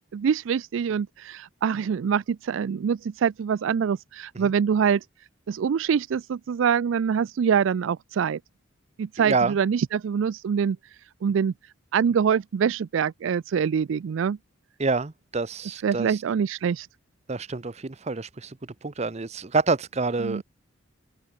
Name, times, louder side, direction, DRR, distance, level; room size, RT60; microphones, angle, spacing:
voice 1, 0.1-5.0 5.5-8.4 9.0-10.8 11.2-11.5 11.9-14.4 15.8-16.9 20.2-20.4, right 7 dB, 70° right, 0.3 m, -24 dB
voice 2, 9.2-9.6 14.8-16.2 17.3-18.6 18.8-20.4, right 3 dB, 35° right, 0.7 m, -27 dB
open air
head